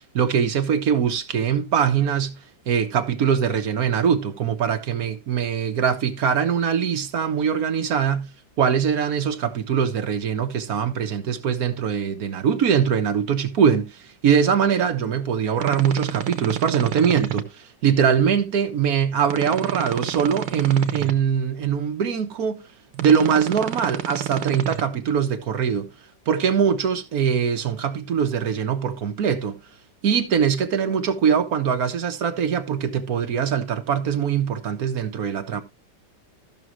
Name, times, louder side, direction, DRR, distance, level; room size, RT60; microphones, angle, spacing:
voice 1, 0.1-2.4 2.7-8.3 8.6-22.6 23.0-25.9 26.3-29.6 30.0-35.6, right 7 dB, 60° right, 1.4 m, -22 dB
sound 1, 15.6-17.4 19.2-21.1 22.9-24.8, right 10 dB, 80° right, 1.6 m, -29 dB
14.0 x 6.1 x 3.0 m
omnidirectional pair, 2.0 m